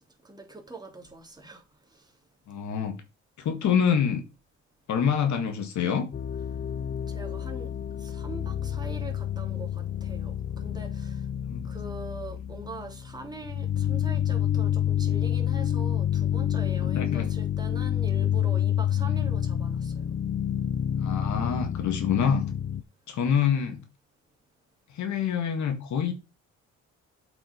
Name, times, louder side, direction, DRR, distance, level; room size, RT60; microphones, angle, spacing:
voice 1, 0.2-2.1 7.1-7.7 8.0-11.3 11.6-20.0 22.1-22.2, right 3 dB, 15° right, 3.0 m, -43 dB
voice 2, 2.5-3.0 3.4-4.2 4.9-6.1 11.5-11.7 16.8-17.3 21.0-22.5 23.1-23.8 24.9-26.1, left 7 dB, 70° left, 1.9 m, -26 dB
sound 1, 6.1-22.8, left 10 dB, 35° left, 0.6 m, -28 dB
7.8 x 6.1 x 5.2 m
cardioid pair, 90°, 30 cm